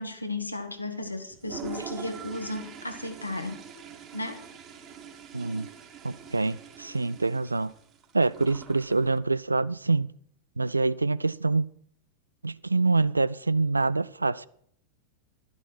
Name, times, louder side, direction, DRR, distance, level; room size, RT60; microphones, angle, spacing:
voice 1, 0.0-3.6 4.1-4.4, left 2 dB, 85° left, 1.7 m, -34 dB
Toilet flush, 1.3-9.2, right 7 dB, 35° right, 2.6 m, -44 dB
voice 2, 5.3-5.7 6.0-7.7 8.1-10.1 10.6-11.7 12.4-14.5, right 3 dB, 80° right, 0.4 m, -26 dB
12.0 x 11.0 x 4.5 m
figure-of-eight pair, 90°, 0 cm